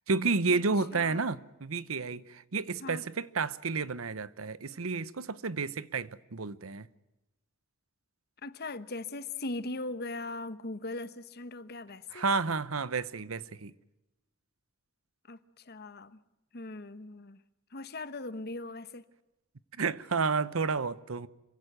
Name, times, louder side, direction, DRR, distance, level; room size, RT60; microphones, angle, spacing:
voice 1, 0.1-6.9 12.1-13.7 19.8-21.3, right 4 dB, 85° right, 0.9 m, -31 dB
voice 2, 0.9-1.3 2.8-3.0 8.4-12.2 15.3-15.4 15.7-16.2 16.5-17.4 17.7-19.0, left 2 dB, 50° left, 1.1 m, -39 dB
26.5 x 16.5 x 9.2 m
head